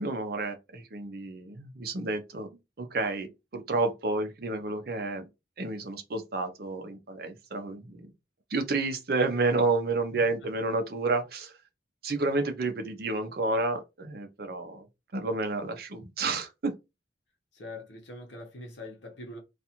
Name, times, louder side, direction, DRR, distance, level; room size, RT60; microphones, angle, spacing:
voice 1, 0.0-2.5 2.8-3.3 3.5-5.3 5.6-8.1 8.5-11.5 12.0-14.9 15.1-16.7, right 3 dB, 55° right, 0.5 m, -30 dB
voice 2, 17.5-19.4, left 2 dB, 70° left, 0.9 m, -43 dB
2.4 x 2.4 x 2.8 m
head